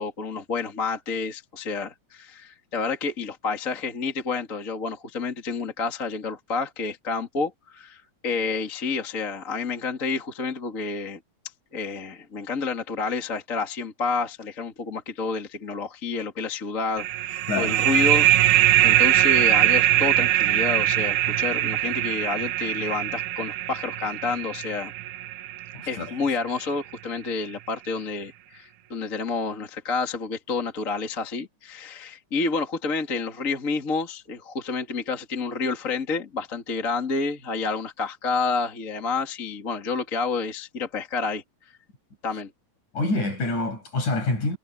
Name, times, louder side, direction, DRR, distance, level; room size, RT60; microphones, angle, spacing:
voice 1, 0.0-11.2 11.7-24.9 25.9-41.4 42.2-42.5, left 4 dB, 25° left, 2.5 m, -29 dB
sound 1, 17.0-26.3, right 14 dB, 70° right, 2.1 m, -22 dB
voice 2, 25.7-26.1 42.9-44.6, left 2 dB, 60° left, 8.1 m, -26 dB
omnidirectional pair, 4.0 m